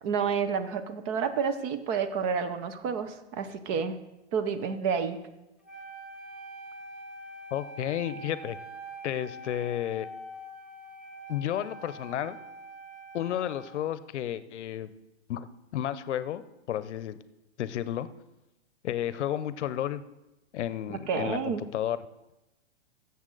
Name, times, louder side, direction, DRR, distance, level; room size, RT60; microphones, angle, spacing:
voice 1, 0.0-4.0 4.3-5.2 20.9-21.6, right 6 dB, 30° right, 10 dB, 0.7 m, -29 dB
Wind instrument woodwind instrument, 5.6-13.9, right 1 dB, ahead, 0.3 m, -44 dB
voice 2, 7.5-8.6 9.0-10.1 11.3-12.4 13.1-14.9 15.3-15.5 15.7-16.4 16.7-17.2 17.6-18.1 18.8-20.0 20.5-22.0, left 11 dB, 75° left, 15 dB, 0.7 m, -32 dB
15.5 x 7.0 x 3.9 m, 0.95 s
hypercardioid pair, 145°, 35 cm